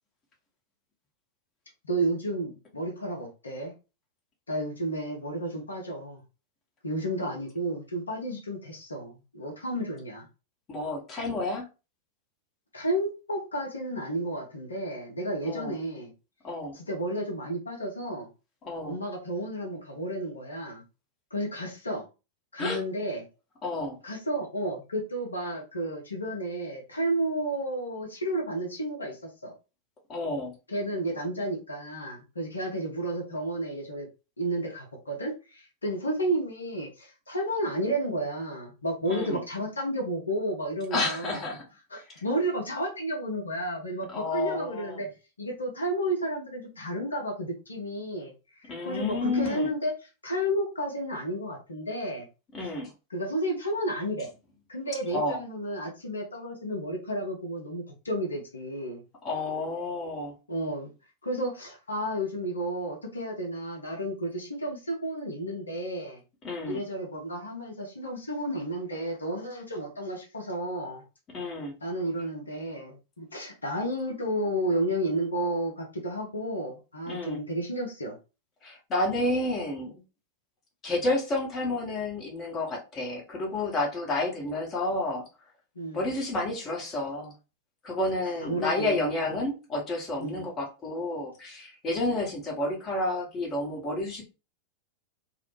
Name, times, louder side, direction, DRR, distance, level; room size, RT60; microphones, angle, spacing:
voice 1, 1.8-3.7 4.5-6.2 6.8-10.3 12.7-16.1 16.7-18.3 18.8-20.8 21.3-22.1 22.5-23.2 24.0-29.2 29.4-29.5 30.7-34.1 34.4-41.4 41.9-45.1 45.4-48.3 48.6-49.9 50.2-52.3 53.1-54.3 54.7-59.0 60.5-60.9 61.2-66.2 66.7-71.0 71.8-78.2 85.8-86.1 88.4-89.3 90.2-90.5, right 1 dB, 75° left, -1 dB, 0.6 m, -32 dB
voice 2, 10.7-11.7 15.4-15.8 16.4-16.8 18.6-19.0 22.6-22.8 23.6-24.0 30.1-30.5 39.1-39.4 40.9-41.6 42.1-42.2 44.1-45.0 48.7-49.7 52.5-52.9 55.1-55.4 59.2-60.3 66.4-66.8 71.3-71.8 77.1-77.4 78.6-79.9 80.8-85.2 85.9-87.3 87.8-94.2, left 2 dB, 25° left, -1 dB, 0.8 m, -30 dB
2.0 x 2.0 x 3.1 m, 0.30 s
figure-of-eight pair, 90°, 0 cm